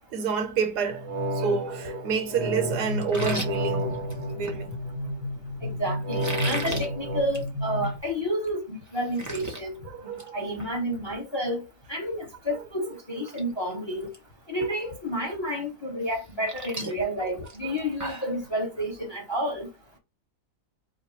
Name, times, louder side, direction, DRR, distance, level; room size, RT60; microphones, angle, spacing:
voice 1, 0.1-1.1 1.3-3.9 4.3-4.8 9.9-10.5, right 6 dB, 75° right, 1.4 m, -29 dB
sound 1, 0.9-5.2 6.0-7.2, equal, 50° right, 1.0 m, -32 dB
sound 2, 2.7-8.0, left 1 dB, 85° left, 2.2 m, -33 dB
sound 3, 3.0-4.6 6.1-6.9 7.2-7.5 7.8-7.9 8.4-8.5 8.8-9.6 10.0-10.3 10.6-10.7 12.6-12.7 13.1-13.4 13.7-14.2 14.6-14.7 16.0-18.3, right 2 dB, 15° right, 0.7 m, -36 dB
voice 2, 5.6-9.8 10.3-11.6 11.9-14.1 14.5-19.7, equal, 20° left, 0.9 m, -30 dB
4.9 x 2.1 x 4.3 m
omnidirectional pair, 1.8 m